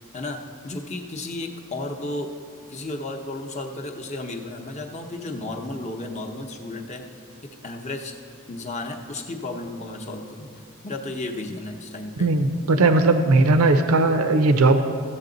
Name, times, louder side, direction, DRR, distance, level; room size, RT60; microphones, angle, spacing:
voice 1, 0.1-2.3 2.7-7.1 7.6-8.1 8.5-10.5 10.8-12.3, left 2 dB, 30° left, 3 dB, 0.7 m, -33 dB
voice 2, 12.2-14.8, right 2 dB, 80° right, 8 dB, 0.6 m, -18 dB
14.5 x 7.6 x 3.9 m, 2.2 s
head